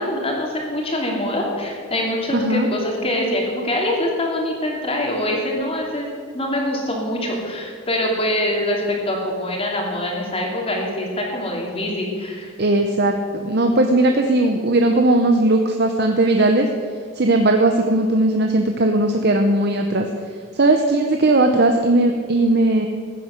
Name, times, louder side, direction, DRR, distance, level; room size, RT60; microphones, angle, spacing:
voice 1, 0.0-6.1 6.3-12.5, left 1 dB, 30° left, -1 dB, 2.8 m, -24 dB
voice 2, 2.3-2.7 12.6-16.7 17.2-20.1 20.5-22.9, right 2 dB, 50° right, 4 dB, 0.9 m, -18 dB
15.5 x 9.9 x 6.6 m, 2.1 s
head